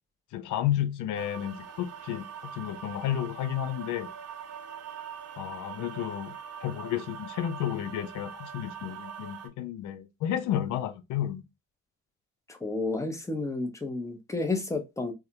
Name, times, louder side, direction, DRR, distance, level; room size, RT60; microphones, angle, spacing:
voice 1, 0.3-4.1 5.4-6.4 6.6-11.4, left 11 dB, 85° left, 0.5 m, -32 dB
sound 1, 1.1-9.5, right 8 dB, 55° right, 0.5 m, -43 dB
voice 2, 12.5-15.1, left 3 dB, 10° left, 0.6 m, -31 dB
2.3 x 2.0 x 2.7 m
cardioid pair, 90°, 30 cm